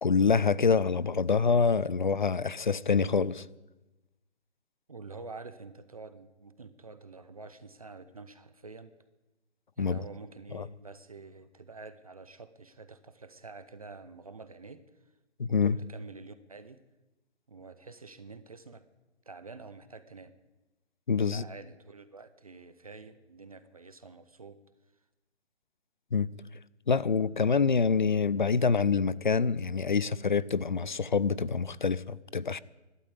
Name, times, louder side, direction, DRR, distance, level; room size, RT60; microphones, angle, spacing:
voice 1, 0.0-3.4 9.8-10.0 10.5-10.6 15.4-15.8 21.1-21.4 26.1-26.3 26.9-32.6, left 5 dB, 45° left, 0.4 m, -26 dB
voice 2, 4.9-8.9 9.8-14.8 15.5-16.8 17.5-18.9 19.3-20.3 21.3-24.6, right 4 dB, 30° right, 0.6 m, -47 dB
13.5 x 12.5 x 8.1 m
hypercardioid pair, 165°, 36 cm